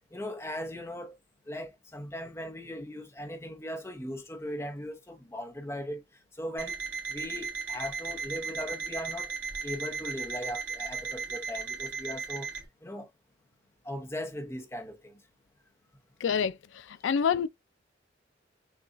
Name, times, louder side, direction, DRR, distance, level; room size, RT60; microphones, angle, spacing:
voice 1, 0.1-1.2 1.5-6.0 6.4-6.8 7.1-9.3 9.6-12.5 12.8-13.1 13.8-15.2, left 1 dB, 15° left, 0.8 m, -38 dB
Alarm, 6.6-12.6, right 5 dB, 70° right, 1.7 m, -36 dB
voice 2, 16.2-16.6 17.0-17.5, left 7 dB, 80° left, 0.4 m, -26 dB
6.7 x 2.3 x 2.5 m
head